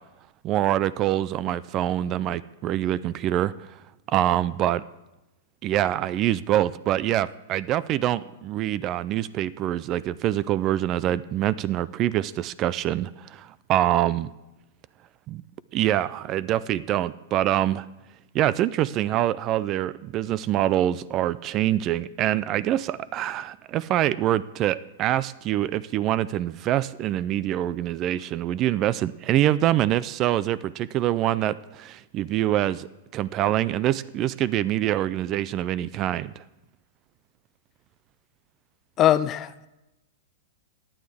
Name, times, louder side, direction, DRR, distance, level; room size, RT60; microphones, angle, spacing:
voice 1, 0.4-3.8 4.1-4.8 5.6-14.3 15.3-15.4 15.7-17.9 18.3-32.9 33.1-36.4, right 13 dB, 35° right, 0.4 m, -25 dB
voice 2, 39.0-39.7, left 12 dB, 30° left, 0.4 m, -21 dB
18.0 x 9.5 x 3.5 m
hypercardioid pair, 125°, 0 cm